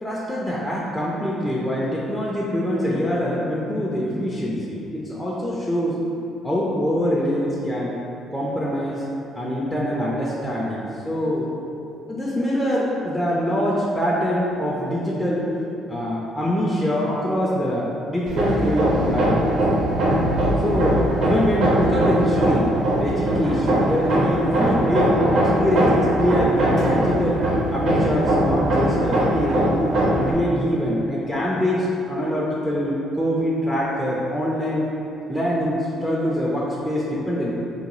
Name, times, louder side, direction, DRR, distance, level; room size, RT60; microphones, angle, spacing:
voice 1, 0.0-6.0 6.4-8.0 8.3-9.0 9.4-11.5 12.1-15.5 15.9-19.4 20.6-22.7 23.0-25.2 25.6-27.5 27.7-29.7 30.1-34.9 35.3-37.5, equal, 5° left, -6 dB, 0.4 m, -24 dB
Hammer, 18.3-30.3, right 1 dB, 70° right, 0.5 m, -21 dB
3.7 x 2.2 x 3.0 m, 2.7 s
cardioid pair, 115°, 0 cm